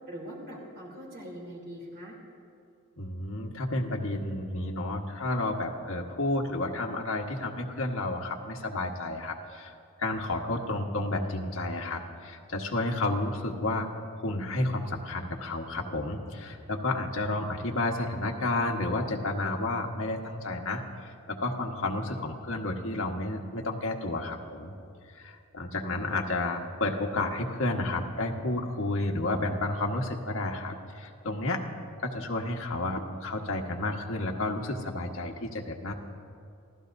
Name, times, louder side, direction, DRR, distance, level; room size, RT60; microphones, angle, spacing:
voice 1, 0.1-2.1 26.0-26.1, equal, 50° right, -2 dB, 3.3 m, -42 dB
voice 2, 3.0-13.9 14.2-24.7 25.1-31.6 32.0-35.9, left 2 dB, 70° left, 1 dB, 1.4 m, -31 dB
28.5 x 15.5 x 2.7 m, 2.5 s
head